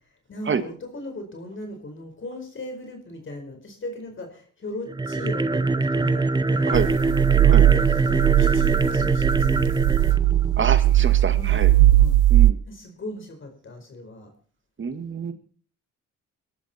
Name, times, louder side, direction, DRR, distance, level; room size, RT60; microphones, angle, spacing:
voice 1, 0.3-6.8 7.3-10.2 11.3-12.2 12.7-14.3 15.3-15.4, left 1 dB, 40° left, 4 dB, 4.7 m, -38 dB
sound 1, 4.9-11.1, right 3 dB, 15° right, 0.7 m, -24 dB
sound 2, 6.7-12.5, right 14 dB, 80° right, 0.6 m, -18 dB
voice 2, 10.6-11.7 12.3-12.6 14.8-15.3, right 6 dB, 40° right, 10 dB, 1.9 m, -27 dB
22.0 x 12.5 x 4.4 m, 0.43 s
cardioid pair, 90°, 30 cm